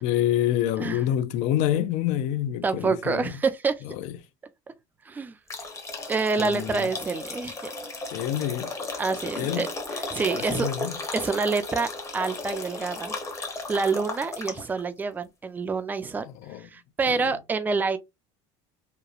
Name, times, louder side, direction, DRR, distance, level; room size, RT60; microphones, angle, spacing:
voice 1, 0.0-3.4 3.8-4.2 6.4-6.9 8.1-8.7 9.4-9.7 10.3-11.0 16.3-16.7 17.1-17.3, left 11 dB, 60° left, 0.4 m, -27 dB
voice 2, 2.6-3.8 5.1-5.4 6.1-7.6 9.0-9.7 10.1-10.7 11.1-13.2 13.7-16.2 16.6-18.0, right 4 dB, 15° right, 0.3 m, -27 dB
sound 1, 5.5-14.8, left 3 dB, 20° left, 0.7 m, -35 dB
2.9 x 2.0 x 2.3 m
cardioid pair, 135°, 14 cm